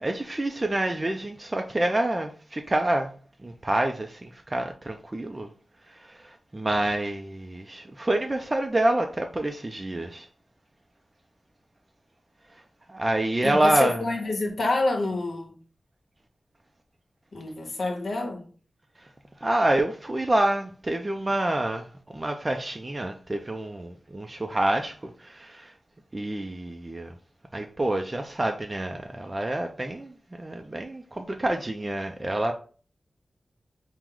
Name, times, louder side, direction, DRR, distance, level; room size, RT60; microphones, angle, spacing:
voice 1, 0.0-3.1 3.4-5.5 6.1-10.3 12.9-14.0 19.4-25.7 26.1-27.1 27.5-30.1 30.4-32.5, right 1 dB, 25° right, 0.3 m, -27 dB
voice 2, 13.4-15.6 17.3-18.5, left 2 dB, 70° left, 1.0 m, -27 dB
4.5 x 2.1 x 3.7 m
wide cardioid pair, 120°, 0 cm